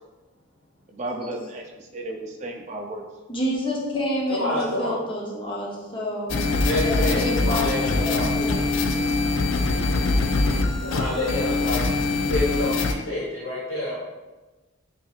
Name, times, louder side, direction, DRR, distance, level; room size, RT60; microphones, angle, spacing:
voice 1, 0.9-3.0, right 1 dB, 35° right, 2 dB, 0.4 m, -34 dB
voice 2, 3.3-6.4 6.8-8.7, equal, 25° left, -3 dB, 0.6 m, -29 dB
voice 3, 4.4-4.9 6.6-8.3 10.8-13.9, left 1 dB, 90° left, -7 dB, 1.2 m, -28 dB
sound 1, 6.3-12.9, left 3 dB, 75° left, 0.4 m, -23 dB
5.5 x 2.6 x 2.4 m, 1.2 s
head